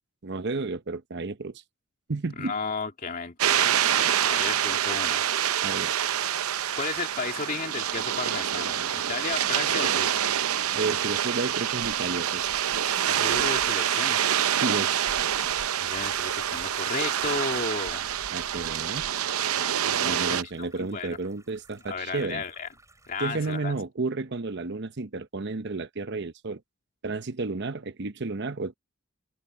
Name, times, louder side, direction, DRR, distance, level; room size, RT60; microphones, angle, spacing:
voice 1, 0.2-1.6 2.1-2.5 5.6-5.9 10.7-12.4 14.6-15.1 18.3-19.1 20.0-22.4 23.2-26.6 27.0-28.7, right 3 dB, 55° right, 0.9 m, -32 dB
voice 2, 2.4-5.2 6.8-10.2 13.1-14.2 15.8-18.0 19.8-21.2 21.9-22.7 23.1-23.7, left 4 dB, 40° left, 2.5 m, -34 dB
sound 1, 3.4-20.4, right 10 dB, 90° right, 0.7 m, -26 dB
sound 2, 7.9-23.6, right 2 dB, 15° right, 6.4 m, -58 dB
head